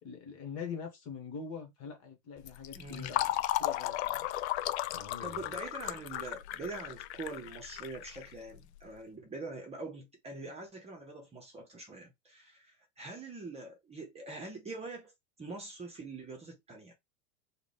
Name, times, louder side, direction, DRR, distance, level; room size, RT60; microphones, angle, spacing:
voice 1, 0.0-4.3 4.9-5.4, left 6 dB, 40° left, 1.7 m, -44 dB
Fill (with liquid), 2.4-8.8, left 15 dB, 55° left, 0.5 m, -35 dB
voice 2, 2.7-3.1 5.2-15.1 15.4-16.9, right 3 dB, 15° right, 1.0 m, -44 dB
3.7 x 2.5 x 3.4 m
supercardioid pair, 135°, 39 cm